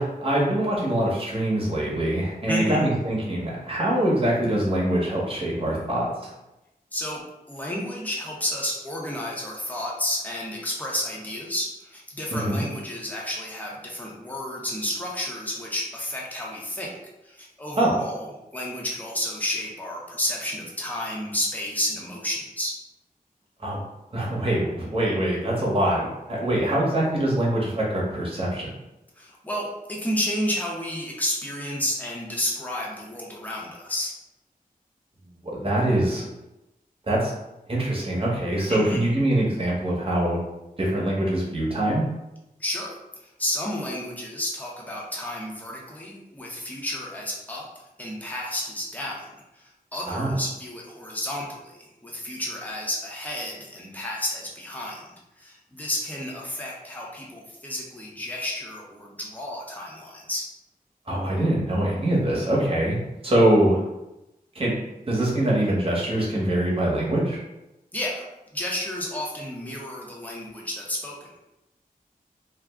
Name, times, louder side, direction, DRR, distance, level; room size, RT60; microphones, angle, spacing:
voice 1, 0.0-6.3 12.3-12.6 17.7-17.9 23.6-23.8 24.1-28.7 35.5-36.3 37.1-37.3 37.7-40.4 40.8-42.0 50.1-50.3 61.1-63.0 63.2-63.8 64.5-64.8 65.1-67.4, right 1 dB, 40° right, -4 dB, 0.9 m, -24 dB
voice 2, 2.5-2.8 6.9-7.2 7.5-17.0 17.2-22.8 29.2-34.1 38.7-39.0 42.6-42.9 43.2-47.6 48.0-49.3 49.5-55.1 55.4-60.5 67.9-71.3, left 1 dB, 10° left, -3 dB, 0.6 m, -31 dB
2.4 x 2.0 x 3.4 m, 0.95 s
wide cardioid pair, 95°, 15 cm